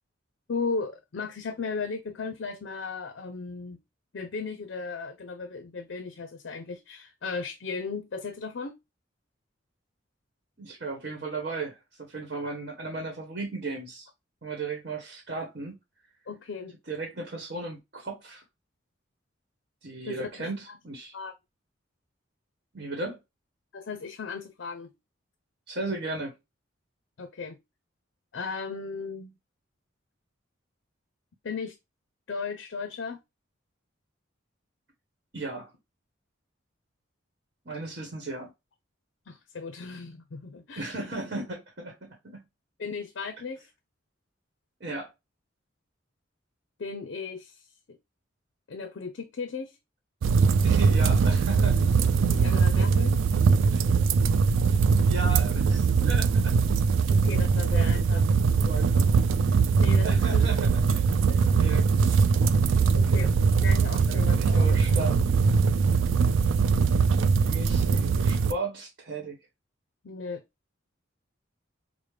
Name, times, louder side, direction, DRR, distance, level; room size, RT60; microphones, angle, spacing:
voice 1, 0.5-3.8 4.1-8.8 16.3-16.7 20.1-20.5 21.1-21.3 23.7-24.9 27.2-27.6 28.3-29.3 31.4-31.7 32.3-33.2 39.3-41.0 42.8-43.7 46.8-47.6 47.9-48.0 48.7-49.8 52.3-53.2 57.1-58.2 59.8-60.4 61.3-61.6 62.9-63.3 63.6-64.8 70.0-70.4, left 4 dB, 65° left, 0.5 m, -36 dB
voice 2, 10.6-14.1 14.4-15.8 16.9-18.4 19.8-21.1 22.7-23.2 25.7-26.3 35.3-35.7 37.6-38.5 40.8-42.4 44.8-45.1 50.6-51.8 53.7-53.8 54.7-54.8 55.1-56.7 57.7-59.1 60.0-61.9 64.1-65.4 67.4-69.4, right 3 dB, 50° right, 1.0 m, -36 dB
sound 1, 50.2-68.5, right 5 dB, 80° right, 0.4 m, -22 dB
5.0 x 2.0 x 3.2 m
head